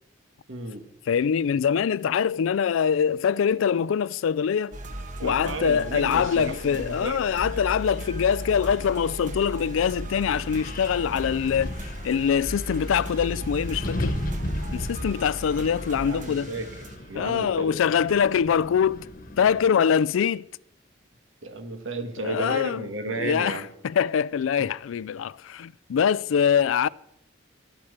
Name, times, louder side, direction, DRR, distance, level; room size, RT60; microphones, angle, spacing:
voice 1, 0.5-0.8 5.2-7.2 16.0-17.7 18.1-18.2 21.4-23.7, right 2 dB, 80° right, 1.7 m, -33 dB
voice 2, 1.1-4.8 5.2-11.8 12.0-14.2 14.7-16.5 17.1-19.1 19.4-20.5 22.2-22.8 23.2-26.9, left 7 dB, 85° left, 0.4 m, -24 dB
sound 1, 4.7-17.0, right 1 dB, 40° right, 1.2 m, -37 dB
Wind, 9.7-19.7, left 1 dB, 45° left, 1.2 m, -36 dB
12.5 x 8.7 x 6.6 m
head